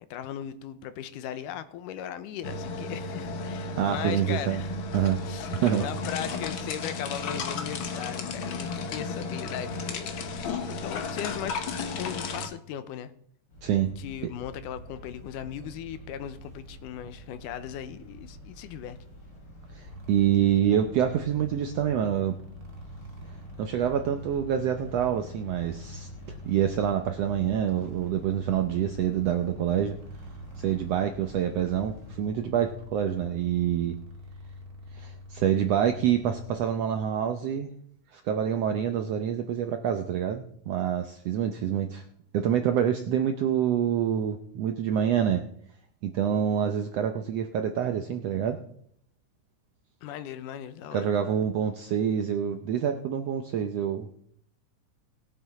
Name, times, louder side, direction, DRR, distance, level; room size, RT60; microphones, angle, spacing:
voice 1, 0.1-4.7 5.2-10.4 10.8-11.6 12.0-13.1 14.0-19.0 50.0-51.3, left 10 dB, 80° left, 12 dB, 2.3 m, -38 dB
sound 1, 2.4-12.5, left 4 dB, 65° left, 1.2 m, -34 dB
voice 2, 3.8-4.6 4.9-5.2 5.6-5.9 13.6-13.9 19.7-22.4 23.6-26.1 26.4-30.0 30.6-34.0 35.0-37.7 38.1-42.0 42.3-45.4 46.0-48.6 50.9-54.1, right 9 dB, 80° right, 6 dB, 1.4 m, -26 dB
sound 2, 13.5-32.1, equal, 40° left, 6.2 m, -47 dB
sound 3, 19.8-36.6, left 2 dB, 35° right, 2.0 m, -45 dB
19.5 x 8.0 x 4.2 m, 0.66 s
omnidirectional pair, 3.7 m